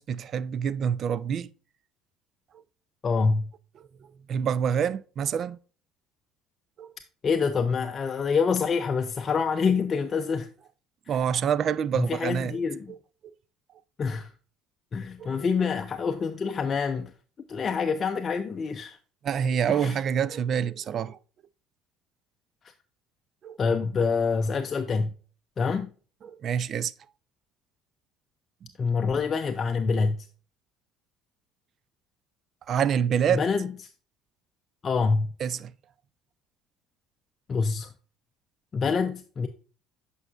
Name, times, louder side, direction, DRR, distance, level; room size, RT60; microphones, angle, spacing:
voice 1, 0.0-1.5 4.3-5.6 6.8-6.9 11.1-12.6 15.2-15.3 19.2-21.2 23.4-23.6 26.2-26.9 32.7-33.5 35.4-35.7, right 8 dB, 50° right, 0.4 m, -26 dB
voice 2, 3.0-3.5 7.2-10.5 11.1-11.2 11.9-12.9 14.0-14.3 14.9-17.1 17.5-19.0 19.7-20.0 22.6-22.7 23.6-25.1 25.6-25.9 28.8-30.3 33.3-33.7 34.8-35.3 37.5-37.9 38.7-39.5, left 5 dB, 40° left, 0.5 m, -26 dB
8.1 x 5.4 x 2.4 m
hypercardioid pair, 75°, 0 cm